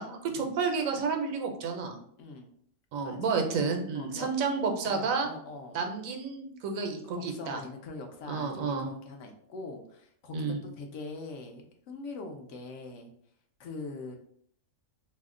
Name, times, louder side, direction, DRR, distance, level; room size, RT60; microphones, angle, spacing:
voice 1, 0.0-2.0 2.9-5.3 5.7-7.6 8.3-8.9 10.3-10.6, right 5 dB, 80° right, 4 dB, 1.0 m, -30 dB
voice 2, 2.2-2.5 3.0-3.4 3.9-4.3 4.8-5.8 7.1-13.1 13.6-14.2, left 3 dB, 70° left, 4 dB, 0.9 m, -43 dB
2.7 x 2.1 x 3.6 m, 0.64 s
omnidirectional pair, 1.4 m